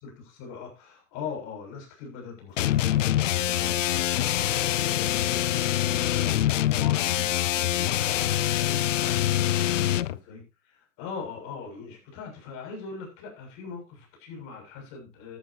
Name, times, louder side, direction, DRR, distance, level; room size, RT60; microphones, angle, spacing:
voice 1, 0.0-15.4, left 5 dB, 50° left, 1 dB, 7.3 m, -41 dB
sound 1, 2.6-10.2, left 13 dB, 80° left, 0.6 m, -25 dB
13.5 x 12.5 x 2.9 m, 0.26 s
hypercardioid pair, 100°, 37 cm